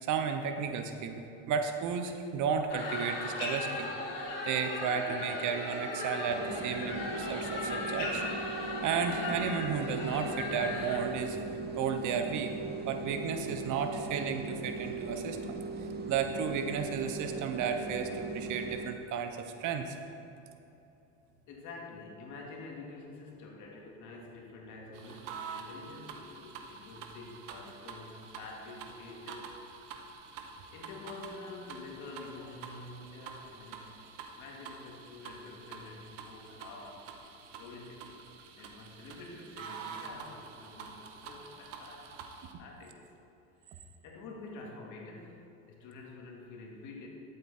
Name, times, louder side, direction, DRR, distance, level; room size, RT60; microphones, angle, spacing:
voice 1, 0.0-3.9 4.4-8.2 8.8-11.4 11.7-12.5 12.9-15.6 16.1-19.9, right 6 dB, 55° right, 6 dB, 1.0 m, -33 dB
sound 1, 2.7-11.0, left 2 dB, 80° left, 2.4 m, -37 dB
sound 2, 6.3-18.9, right 3 dB, 25° right, 1.1 m, -39 dB
voice 2, 21.5-29.6 30.7-34.1 34.3-37.3 37.6-38.1 38.6-42.1 42.6-43.0 43.6-47.1, left 3 dB, 55° left, 0 dB, 2.2 m, -48 dB
sound 3, 24.9-42.5, right 5 dB, 85° right, 1.2 m, -47 dB
12.0 x 7.9 x 4.3 m, 2.9 s
supercardioid pair, 105°, 36 cm